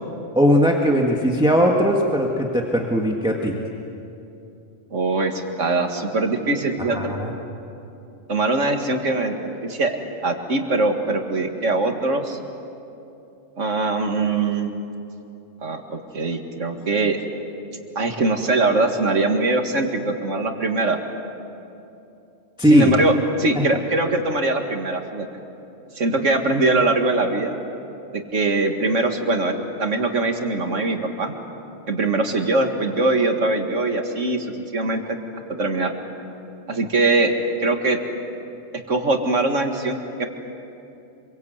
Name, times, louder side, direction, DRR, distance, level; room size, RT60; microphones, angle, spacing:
voice 1, 0.4-3.5 6.9-7.3 22.6-23.0, equal, 5° right, -1 dB, 1.8 m, -19 dB
voice 2, 4.9-7.1 8.3-10.0 10.2-12.4 13.6-14.8 15.6-17.2 18.0-21.0 22.7-25.3 26.0-27.6 28.1-31.3 31.9-35.2 35.6-35.9 36.7-37.3 37.6-38.0 38.7-40.3, right 2 dB, 85° right, 4 dB, 2.3 m, -22 dB
27.0 x 24.0 x 8.2 m, 2.7 s
omnidirectional pair, 1.3 m